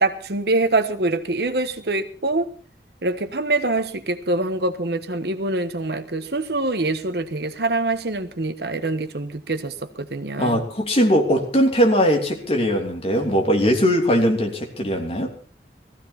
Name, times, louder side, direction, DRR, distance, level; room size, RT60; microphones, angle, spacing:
voice 1, 0.0-2.5 3.0-10.6, right 2 dB, 60° right, 10 dB, 1.2 m, -24 dB
voice 2, 10.4-15.3, equal, 35° left, 2 dB, 3.1 m, -20 dB
18.5 x 15.0 x 4.3 m, 0.41 s
head